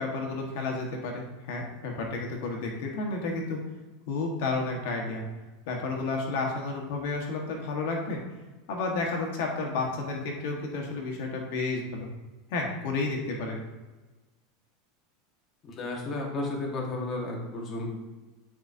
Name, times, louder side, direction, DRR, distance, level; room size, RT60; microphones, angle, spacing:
voice 1, 0.0-3.6 4.1-5.2 5.7-8.2 8.7-12.1 12.5-13.6, left 3 dB, 60° left, 1 dB, 1.3 m, -31 dB
voice 2, 15.6-17.9, left 2 dB, 25° left, -1 dB, 1.2 m, -33 dB
9.1 x 4.8 x 2.7 m, 1.2 s
supercardioid pair, 160°, 0 cm